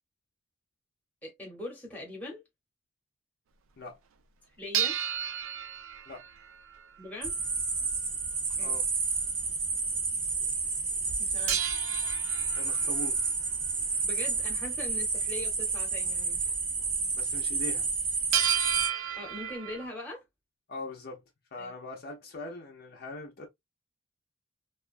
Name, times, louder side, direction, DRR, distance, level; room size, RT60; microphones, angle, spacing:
voice 1, 1.2-2.4 4.6-5.0 7.0-7.3 8.5-8.8 9.4-9.5 11.2-11.7 14.0-16.5 19.2-20.2 21.6-21.7, left 2 dB, 5° left, 0.9 m, -41 dB
sound 1, 4.7-7.1 11.5-13.3 18.3-19.8, right 9 dB, 65° right, 0.4 m, -32 dB
sound 2, 7.2-18.9, right 4 dB, 40° right, 0.8 m, -30 dB
voice 2, 8.6-8.9 12.5-13.3 17.2-17.9 20.7-21.2 21.5-23.5, left 2 dB, 45° left, 0.5 m, -41 dB
2.3 x 2.2 x 2.4 m
head